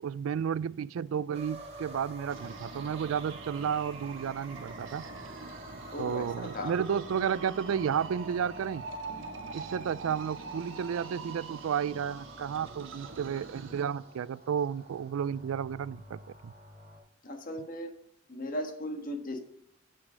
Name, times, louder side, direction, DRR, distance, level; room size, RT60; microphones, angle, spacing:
voice 1, 0.0-5.1 6.0-8.8 9.5-16.5, right 7 dB, 90° right, 0.3 m, -32 dB
sound 1, 1.3-17.0, right 1 dB, 30° right, 2.3 m, -48 dB
sound 2, 2.3-13.8, right 4 dB, 70° right, 1.2 m, -45 dB
voice 2, 5.9-6.7 17.2-17.9 18.3-19.4, left 1 dB, 45° left, 1.5 m, -37 dB
8.8 x 5.0 x 6.2 m
head